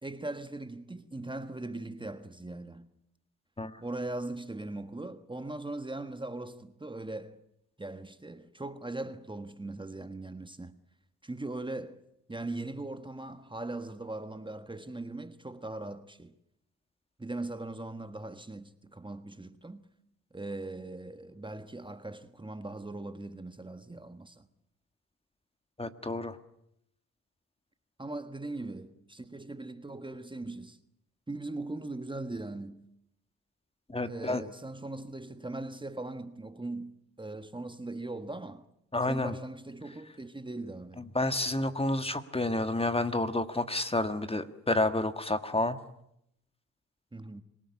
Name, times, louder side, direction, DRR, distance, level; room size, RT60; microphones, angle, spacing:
voice 1, 0.0-2.9 3.8-7.4 7.8-10.7 11.2-12.0 12.3-16.3 17.2-19.8 20.3-24.5 28.0-30.8 31.3-32.8 34.1-38.7 39.1-41.1 47.1-47.4, right 2 dB, 15° right, 1.4 m, -40 dB
voice 2, 25.8-26.4 33.9-34.4 38.9-39.3 41.1-45.8, left 2 dB, 15° left, 1.6 m, -29 dB
26.5 x 18.0 x 9.7 m
cardioid pair, 75°, 34 cm